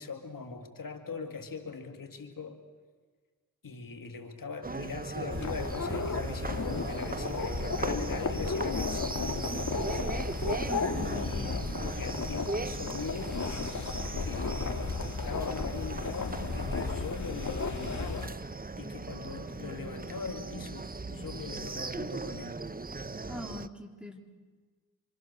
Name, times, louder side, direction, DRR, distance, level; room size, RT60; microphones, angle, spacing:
voice 1, 0.0-2.6 3.6-10.3 10.6-10.9 11.1-13.4 14.2-18.4 18.8-22.6, left 5 dB, 70° left, 4 dB, 2.3 m, -41 dB
sound 1, 4.6-23.7, right 3 dB, 25° right, 1.0 m, -38 dB
sound 2, 5.3-18.3, left 4 dB, 55° left, 2.4 m, -34 dB
voice 2, 10.7-11.7 23.3-24.2, left 1 dB, 5° right, 2 dB, 4.0 m, -42 dB
26.5 x 25.0 x 6.7 m, 1.5 s
cardioid pair, 40°, 34 cm